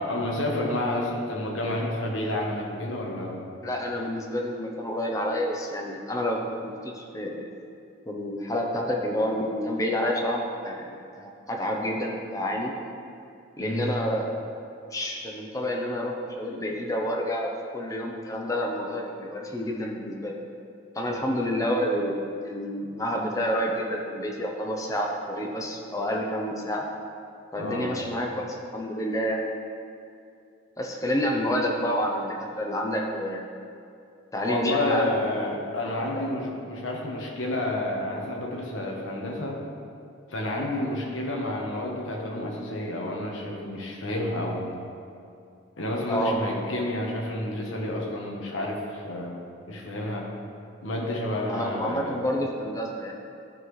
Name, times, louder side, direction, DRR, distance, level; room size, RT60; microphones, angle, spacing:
voice 1, 0.0-3.4 13.6-13.9 27.5-28.0 34.4-39.6 40.3-44.7 45.8-49.4 49.7-50.3 50.8-52.2, left 1 dB, 90° left, -1 dB, 1.1 m, -30 dB
voice 2, 3.6-7.5 8.1-12.7 13.6-14.3 14.9-20.3 20.9-22.2 22.4-26.9 27.5-29.4 30.8-33.5 34.3-35.1 35.8-36.3 46.1-46.4 51.5-53.1, equal, 15° left, 0 dB, 0.7 m, -29 dB
12.0 x 4.1 x 3.2 m, 2.5 s
head